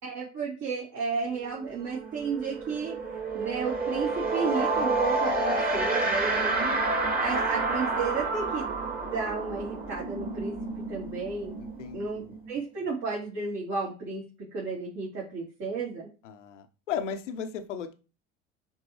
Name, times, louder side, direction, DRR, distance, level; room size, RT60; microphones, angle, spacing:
voice 1, 0.0-3.0 3.3-6.8 7.2-8.7 9.1-11.6 11.9-16.1, right 4 dB, 50° right, -5 dB, 3.5 m, -33 dB
sound 1, 1.5-1.6 1.9-12.5, right 3 dB, 25° right, 2.3 m, -29 dB
voice 2, 11.6-12.4 16.2-17.9, left 7 dB, 75° left, 8 dB, 1.0 m, -36 dB
10.0 x 3.8 x 3.2 m, 0.33 s
hypercardioid pair, 70°, 36 cm